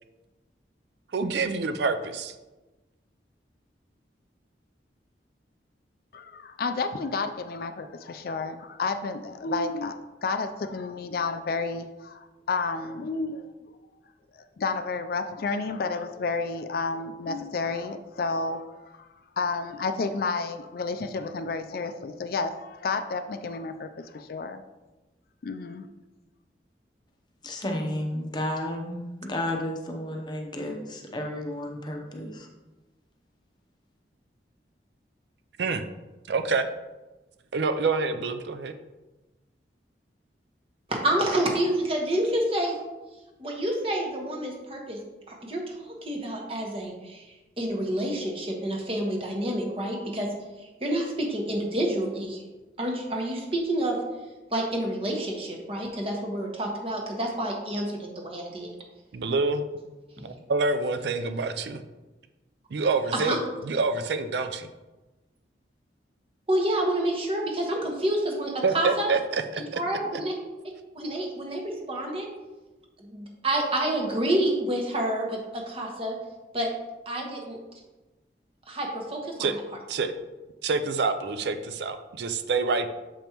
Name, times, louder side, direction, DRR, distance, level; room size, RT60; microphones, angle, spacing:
voice 1, 1.1-2.3 35.6-35.8 36.3-36.7 37.5-38.8 59.1-59.7 60.2-61.8 62.7-63.4 63.7-64.7 68.6-69.8 79.4-79.6 79.9-80.1 80.6-82.9, right 4 dB, 70° right, 9 dB, 0.4 m, -27 dB
voice 2, 6.1-13.5 14.6-18.6 19.0-19.1 19.4-24.6 25.4-25.8, left 4 dB, 55° left, 9 dB, 0.3 m, -31 dB
voice 3, 27.4-32.5, left 1 dB, 25° left, 2 dB, 0.7 m, -32 dB
voice 4, 40.9-42.8 43.4-45.0 45.3-50.3 50.6-52.4 52.8-54.0 54.5-58.8 60.2-60.3 63.1-63.4 66.5-69.1 69.7-70.3 70.9-72.3 73.0-76.2 76.5-76.7 77.0-77.6 78.7-79.5, right 1 dB, 30° right, 0 dB, 1.2 m, -28 dB
7.1 x 5.2 x 2.9 m, 1.1 s
head